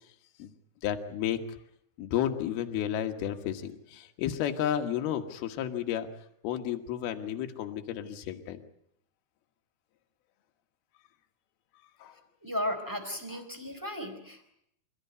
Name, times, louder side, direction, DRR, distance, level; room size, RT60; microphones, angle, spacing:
voice 1, 0.8-1.4 2.0-6.1 6.4-8.6 12.0-12.1, left 10 dB, 75° left, 5 dB, 3.4 m, -32 dB
voice 2, 12.4-14.5, left 1 dB, 5° right, 5 dB, 3.7 m, -35 dB
27.0 x 14.5 x 9.4 m, 0.74 s
omnidirectional pair, 4.6 m